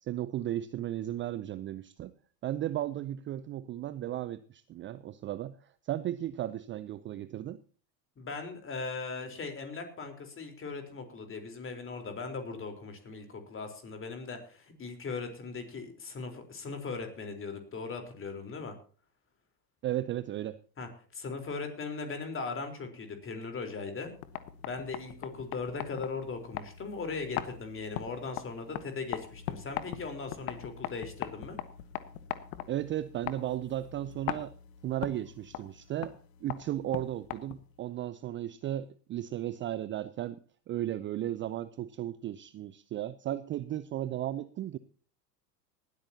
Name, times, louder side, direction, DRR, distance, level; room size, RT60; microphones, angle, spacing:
voice 1, 0.0-2.1 2.4-5.6 5.8-7.6 19.8-20.6 32.7-34.5 34.8-36.2 36.4-40.4 40.7-44.8, right 13 dB, 25° right, 0.5 m, -35 dB
voice 2, 8.2-18.7 20.8-24.1 24.6-31.6, left 4 dB, 25° left, 4.0 m, -39 dB
sound 1, 24.1-37.8, left 12 dB, 60° left, 1.5 m, -41 dB
19.0 x 13.0 x 2.8 m
hypercardioid pair, 85°, 49 cm